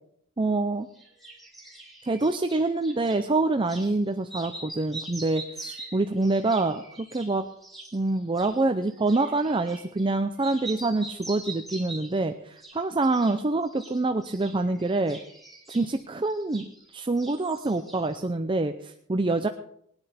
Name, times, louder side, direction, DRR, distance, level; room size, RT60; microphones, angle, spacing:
voice 1, 0.4-0.9 2.0-7.5 7.9-15.2 15.7-19.5, right 2 dB, 25° right, 7 dB, 0.5 m, -26 dB
sound 1, 0.9-3.2 3.7-3.9 4.2-10.1 10.4-12.2 12.6-13.4 13.7-16.9 17.2-18.2, right 2 dB, ahead, 2.5 m, -43 dB
19.5 x 9.7 x 4.3 m, 0.69 s
head